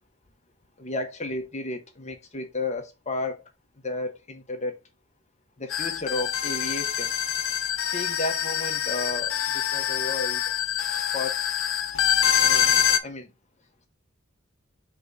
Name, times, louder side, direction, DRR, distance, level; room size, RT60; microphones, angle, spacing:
voice 1, 0.8-3.4 3.8-4.8 5.6-7.1 7.9-10.4 11.1-11.4 12.4-13.3, left 2 dB, 35° left, 1.2 m, -33 dB
sound 1, 5.7-13.0, left 9 dB, 75° left, 0.7 m, -25 dB
5.0 x 3.6 x 5.3 m
head